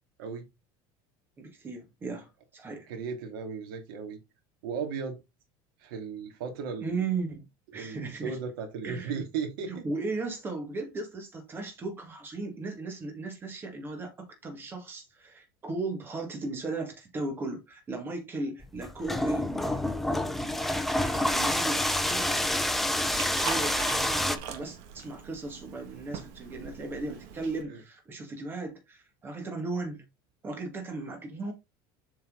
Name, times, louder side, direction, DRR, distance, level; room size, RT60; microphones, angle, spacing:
voice 1, 1.4-2.9 6.8-7.5 7.7-8.4 8.8-9.2 9.7-19.8 21.0-22.7 23.1-30.1 30.4-31.5, right 3 dB, 20° right, 1.9 m, -36 dB
voice 2, 2.9-4.2 4.6-5.2 5.8-7.0 7.7-9.8 27.7-27.8, right 6 dB, 90° right, 2.6 m, -36 dB
sound 1, 18.6-24.4, left 1 dB, ahead, 0.6 m, -28 dB
Liquid, 22.0-27.6, right 7 dB, 65° right, 1.6 m, -42 dB
7.4 x 4.3 x 3.9 m
cardioid pair, 165°, 11 cm